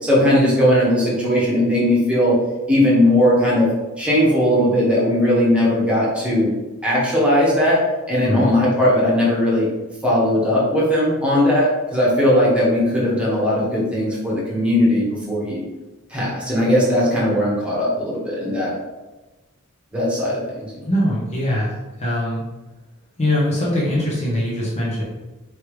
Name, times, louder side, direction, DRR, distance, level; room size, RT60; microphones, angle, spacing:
voice 1, 0.0-2.3 2.7-3.7 4.0-6.5 6.8-7.8 8.1-9.7 10.0-15.6 16.1-18.7 19.9-20.8, left 1 dB, 5° right, -6 dB, 1.2 m, -18 dB
voice 2, 20.8-22.4 23.2-25.0, left 1 dB, 30° left, -6 dB, 1.0 m, -22 dB
4.7 x 3.3 x 3.2 m, 1.1 s
head